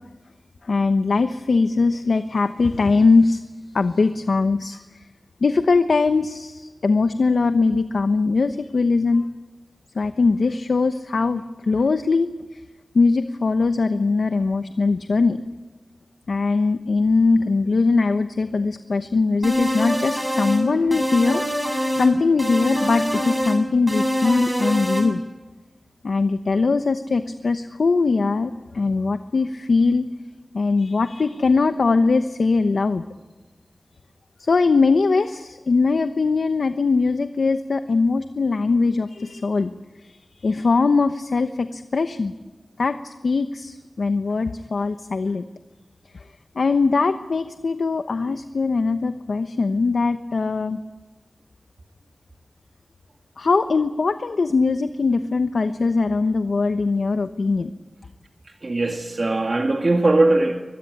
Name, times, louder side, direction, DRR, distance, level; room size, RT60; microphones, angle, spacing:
voice 1, 0.6-3.4 3.7-5.0 5.4-9.3 9.9-12.3 12.9-15.4 16.3-21.4 22.0-25.2 26.0-30.1 30.5-33.0 34.4-39.7 40.0-42.3 42.8-45.5 46.1-46.2 46.5-50.8 53.4-57.7, left 4 dB, 85° left, 9 dB, 1.0 m, -21 dB
sound 1, 19.4-20.6 20.9-22.1 22.4-23.6 23.9-25.1, equal, 10° right, 7.0 m, -24 dB
voice 2, 58.6-60.6, right 2 dB, 50° right, 3 dB, 2.4 m, -20 dB
24.0 x 22.0 x 10.0 m, 1.2 s
wide cardioid pair, 80°, 0 cm